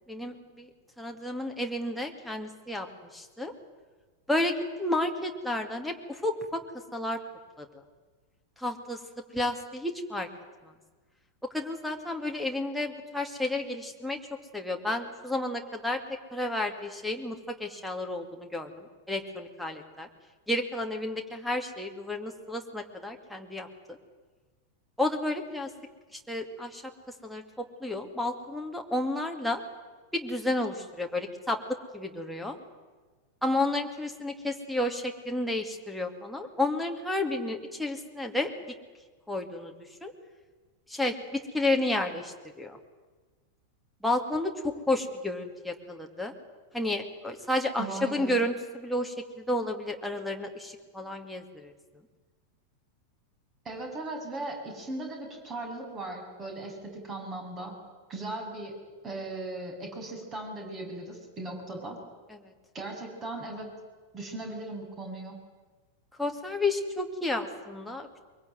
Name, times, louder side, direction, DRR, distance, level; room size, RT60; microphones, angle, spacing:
voice 1, 0.1-0.7 1.0-2.9 3.1-3.5 4.3-6.6 6.9-7.2 7.6-7.7 8.6-9.0 9.3-10.3 10.6-10.7 11.5-14.2 14.5-16.0 16.3-20.1 20.5-24.0 25.0-25.7 26.1-26.8 27.2-29.6 30.1-31.6 31.9-32.6 33.4-38.5 39.3-39.7 40.0-40.1 40.9-42.8 44.0-44.5 44.9-46.3 46.7-51.7 62.3-62.4 66.2-68.1, left 1 dB, ahead, 1 dB, 2.5 m, -31 dB
voice 2, 47.8-48.4 53.6-57.8 58.1-58.7 59.0-62.0 62.7-63.7 64.1-65.4, right 2 dB, 25° right, 3 dB, 7.2 m, -38 dB
23.0 x 23.0 x 9.4 m, 1.3 s
figure-of-eight pair, 90°, 0 cm